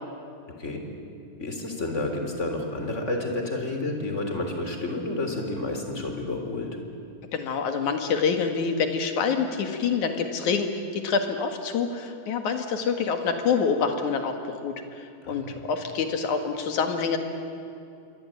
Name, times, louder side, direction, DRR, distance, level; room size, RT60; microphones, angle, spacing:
voice 1, 1.4-6.7 15.2-15.6, left 2 dB, 25° left, 3 dB, 3.6 m, -30 dB
voice 2, 7.3-17.2, left 5 dB, 85° left, 6 dB, 3.3 m, -26 dB
27.5 x 22.5 x 9.0 m, 2.5 s
omnidirectional pair, 3.4 m